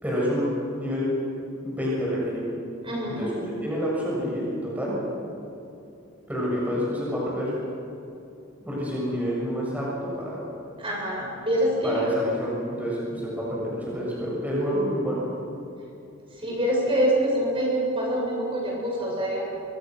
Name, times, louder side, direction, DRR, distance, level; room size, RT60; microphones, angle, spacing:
voice 1, 0.0-1.1 1.5-2.5 3.1-3.3 3.6-5.0 6.3-7.5 8.7-9.9 10.1-10.5 11.8-15.3, equal, 10° right, -5 dB, 6.9 m, -28 dB
voice 2, 2.8-3.4 10.8-12.1 16.4-19.5, equal, 25° right, -3 dB, 7.2 m, -25 dB
28.5 x 25.5 x 6.4 m, 2.8 s
head